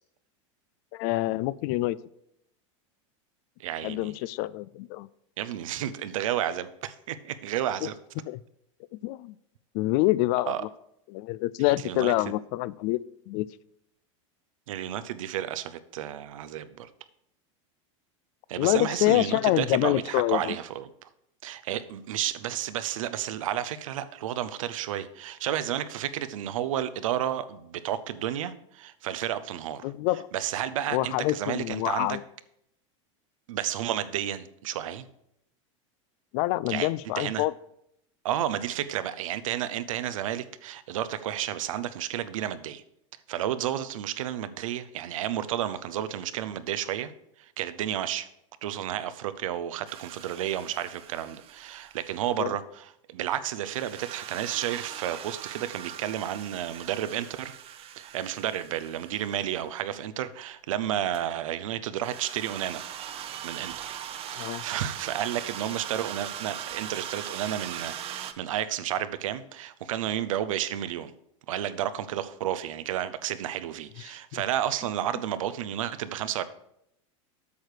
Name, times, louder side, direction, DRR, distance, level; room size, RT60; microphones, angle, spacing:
voice 1, 0.9-2.0 3.8-5.1 7.8-7.9 8.3-8.4 9.0-9.3 9.7-10.5 11.1-13.0 13.3-13.5 18.6-20.6 29.8-30.3 30.9-32.2 36.3-37.5 52.4-52.5 64.4-64.6 74.3-74.4, left 18 dB, 55° left, 20 dB, 0.4 m, -26 dB
voice 2, 3.6-4.1 5.4-8.0 10.5-10.6 11.8-12.3 14.7-16.9 18.5-21.1 21.4-29.9 30.3-32.2 33.5-35.1 36.7-36.9 37.2-37.4 38.2-42.8 43.3-47.1 47.4-48.3 48.6-57.5 58.0-62.8 63.4-64.0 64.3-71.1 71.5-76.4, right 11 dB, 85° right, 13 dB, 0.6 m, -31 dB
sound 1, 49.9-52.3 53.7-59.8 61.1-61.2 62.0-68.3, right 10 dB, 35° right, 0.7 m, -40 dB
8.2 x 6.5 x 4.9 m, 0.77 s
supercardioid pair, 120°, 17 cm